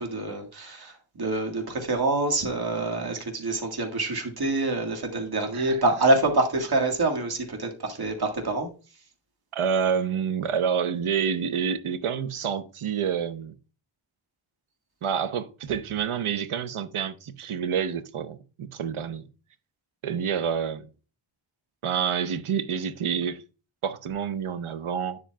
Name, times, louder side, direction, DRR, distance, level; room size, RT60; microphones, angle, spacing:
voice 1, 0.0-8.7, right 2 dB, 45° right, 1.9 m, -26 dB
voice 2, 9.5-13.6 15.0-19.3 20.0-20.9 21.8-23.4 23.8-25.2, right 7 dB, 80° right, 0.8 m, -28 dB
9.7 x 7.5 x 2.3 m
wide cardioid pair, 80°, 50 cm